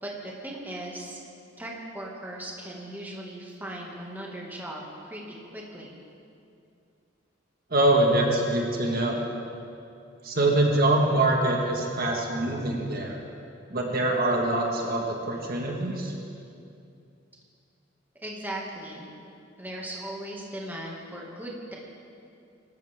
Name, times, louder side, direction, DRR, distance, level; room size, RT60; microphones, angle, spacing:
voice 1, 0.0-1.2 1.6-6.0 18.2-19.1 19.6-21.7, right 1 dB, 10° right, -3 dB, 2.1 m, -38 dB
voice 2, 7.7-9.2 10.2-13.2 13.7-16.1, right 2 dB, 50° right, 0 dB, 1.7 m, -24 dB
25.0 x 13.5 x 3.7 m, 2.5 s
head